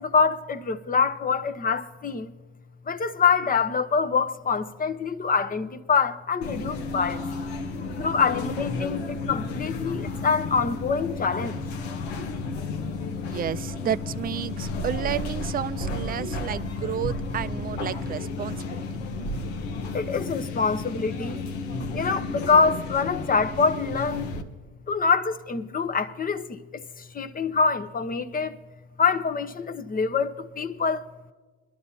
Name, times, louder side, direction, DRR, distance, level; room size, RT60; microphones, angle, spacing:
voice 1, 0.0-2.3 2.9-7.2 8.0-11.6 16.9-17.1 19.9-21.4 21.9-24.3 24.9-26.6 27.1-28.6 29.0-31.0, left 5 dB, 25° left, 0.8 m, -25 dB
sound 1, 6.4-24.4, left 3 dB, 90° left, 1.2 m, -32 dB
voice 2, 13.2-18.8, right 10 dB, 30° right, 0.4 m, -31 dB
22.5 x 12.0 x 2.8 m
supercardioid pair, 85°, 31 cm